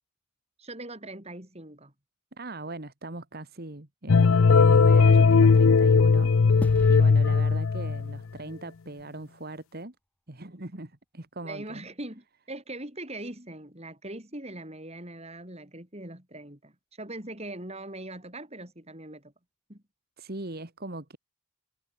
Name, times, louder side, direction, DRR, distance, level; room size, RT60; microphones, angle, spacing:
voice 1, 0.6-1.9 7.3-7.6 11.4-16.7 17.0-19.3 19.7-19.8, right 1 dB, 30° right, 5.2 m, -41 dB
voice 2, 2.4-10.0 10.3-11.8 20.2-21.2, right 2 dB, 45° right, 2.0 m, -40 dB
sound 1, 4.1-8.2, left 4 dB, 65° left, 0.5 m, -18 dB
sound 2, 6.6-9.2, equal, 5° left, 4.1 m, -42 dB
head